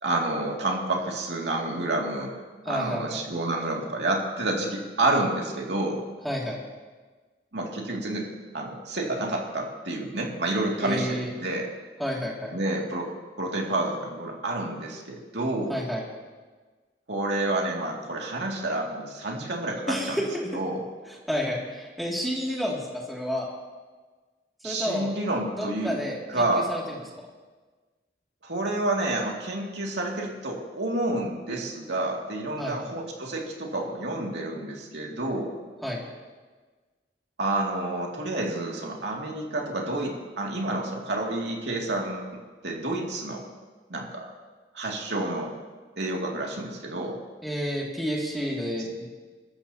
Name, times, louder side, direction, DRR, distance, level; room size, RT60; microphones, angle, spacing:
voice 1, 0.0-2.3 2.6-6.0 7.5-8.3 8.5-11.7 12.5-13.1 13.4-15.8 17.1-20.2 20.5-20.8 24.6-26.0 26.3-26.7 28.4-35.6 37.4-42.3 42.6-43.4 43.9-44.3 44.7-45.5 46.0-47.2, right 2 dB, 80° right, -1 dB, 2.5 m, -29 dB
voice 2, 2.7-3.2 6.2-6.6 10.8-11.3 12.0-12.5 15.7-16.1 19.9-20.5 21.1-23.5 24.6-25.1 25.6-27.0 32.6-32.9 35.8-36.0 47.4-49.2, equal, ahead, -4 dB, 2.4 m, -30 dB
28.5 x 13.5 x 2.9 m, 1.4 s
head